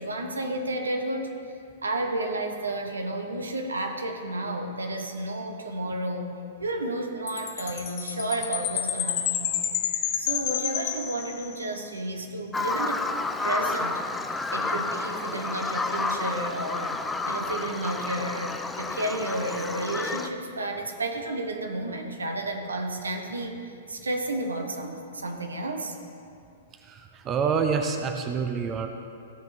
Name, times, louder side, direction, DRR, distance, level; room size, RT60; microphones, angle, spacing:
voice 1, 0.0-1.3 1.8-6.3 6.6-9.7 10.2-17.0 17.3-26.0, right 1 dB, 80° right, 4 dB, 1.1 m, -32 dB
Chime, 7.3-11.8, left 10 dB, 40° left, 0.8 m, -30 dB
Bird vocalization bird call bird song, 12.5-20.3, left 3 dB, 10° left, 0.5 m, -30 dB
voice 2, 26.8-28.9, right 6 dB, 25° right, 5 dB, 0.8 m, -27 dB
15.5 x 5.4 x 6.0 m, 2.5 s
figure-of-eight pair, 110°, 0 cm